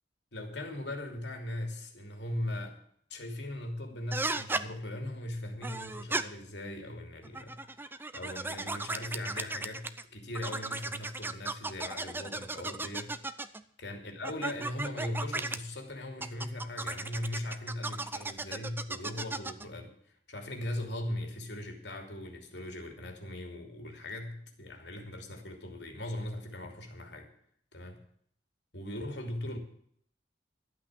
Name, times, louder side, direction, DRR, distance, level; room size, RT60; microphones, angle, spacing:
voice 1, 0.3-2.8 3.1-13.2 13.8-19.9 20.3-27.3 27.7-27.9 28.7-29.6, left 1 dB, 75° left, 4 dB, 2.9 m, -39 dB
sound 1, 4.1-4.6 5.6-6.2 7.2-10.0 10.3-13.6 14.2-15.6 16.2-19.7, right 2 dB, 10° right, 0.6 m, -35 dB
12.5 x 8.7 x 7.5 m, 0.64 s
head